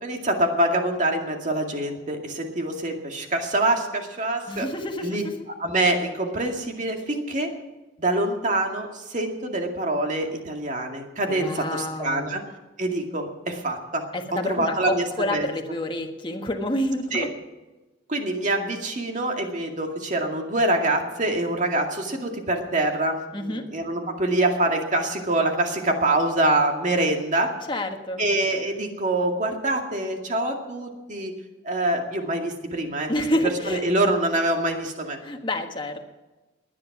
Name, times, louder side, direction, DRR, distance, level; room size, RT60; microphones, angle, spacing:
voice 1, 0.0-4.7 5.0-5.2 5.6-7.5 8.0-12.4 12.8-14.1 14.4-15.1 15.3-15.5 17.1-17.3 18.1-27.5 28.2-31.3 31.6-33.1 33.7-35.2, right 1 dB, 40° right, 3 dB, 2.2 m, -25 dB
voice 2, 4.5-5.3 11.3-12.3 14.1-17.3 23.3-23.7 27.7-28.2 33.1-33.8 35.2-36.0, left 1 dB, 25° left, 4 dB, 1.5 m, -28 dB
19.5 x 10.5 x 6.0 m, 1.2 s
head